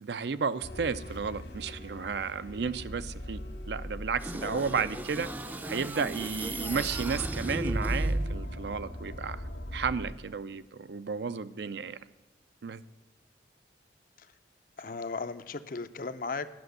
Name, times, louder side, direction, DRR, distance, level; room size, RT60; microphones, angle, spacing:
voice 1, 0.0-3.4 3.7-5.3 5.6-9.4 9.7-12.0 12.6-12.8, right 5 dB, 70° right, 14 dB, 0.5 m, -33 dB
sound 1, 0.6-10.1, left 1 dB, 75° left, 1.9 m, -42 dB
sound 2, 4.2-8.5, right 1 dB, 10° right, 0.4 m, -34 dB
voice 2, 14.8-16.5, left 4 dB, 50° left, 12 dB, 0.5 m, -36 dB
10.5 x 6.1 x 7.9 m, 1.1 s
head